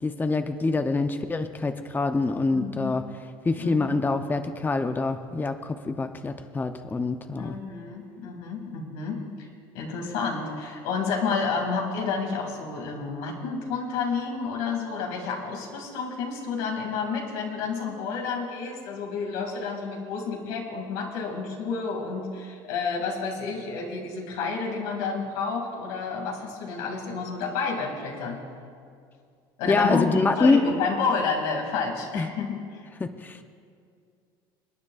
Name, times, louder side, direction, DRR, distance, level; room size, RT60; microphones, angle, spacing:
voice 1, 0.0-3.0 3.4-7.6 29.7-30.6 32.1-32.3 33.0-33.4, left 3 dB, 15° left, 8 dB, 0.7 m, -25 dB
voice 2, 2.5-3.0 3.6-3.9 7.4-9.5 9.7-28.4 29.6-32.8, left 5 dB, 80° left, 1 dB, 2.4 m, -30 dB
28.5 x 9.5 x 2.4 m, 2.3 s
supercardioid pair, 90°, 12 cm